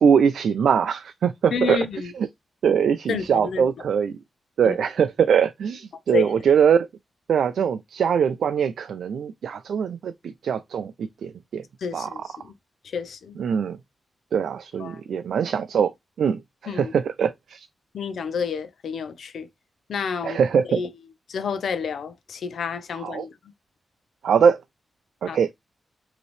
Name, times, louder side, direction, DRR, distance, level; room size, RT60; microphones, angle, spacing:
voice 1, 0.0-1.8 2.2-2.3 2.6-4.1 4.6-6.9 7.3-10.1 10.4-11.6 11.9-12.2 13.4-13.8 14.3-15.9 16.2-17.7 20.2-20.8 23.0-23.3 24.2-24.6 25.2-25.5, right 7 dB, 75° right, 0.4 m, -22 dB
voice 2, 1.5-2.1 3.1-3.6 4.6-4.7 6.1-6.4 11.8-12.5 12.9-13.4 14.8-15.0 16.7-16.9 17.9-19.5 19.9-20.4 20.8-20.9 21.3-23.3 25.3-25.5, left 6 dB, 70° left, 0.7 m, -29 dB
5.2 x 3.0 x 3.1 m
wide cardioid pair, 145°, 0 cm